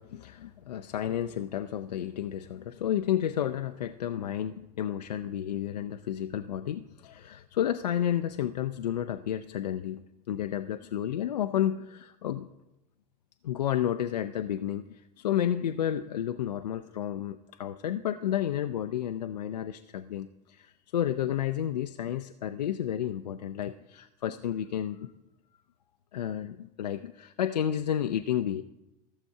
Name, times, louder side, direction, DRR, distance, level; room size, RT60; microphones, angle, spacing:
voice 1, 0.0-12.5 13.4-25.1 26.1-28.6, left 10 dB, 75° left, 8 dB, 0.4 m, -31 dB
14.5 x 6.8 x 4.7 m, 0.97 s
figure-of-eight pair, 70°, 21 cm